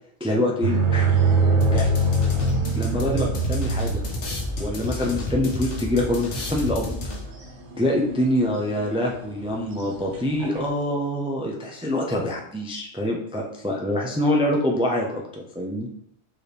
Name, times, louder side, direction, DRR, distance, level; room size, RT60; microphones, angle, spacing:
voice 1, 0.2-1.1 1.7-1.9 2.8-4.0 4.6-6.9 7.8-15.9, left 1 dB, 10° right, -1 dB, 0.3 m, -25 dB
sound 1, 0.6-7.4 8.1-8.5 8.8-8.9 9.3-10.7, right 2 dB, 75° right, 1.1 m, -23 dB
sound 2, 1.6-7.5, left 2 dB, 85° left, 1.2 m, -31 dB
4.6 x 3.1 x 3.3 m, 0.71 s
omnidirectional pair, 1.2 m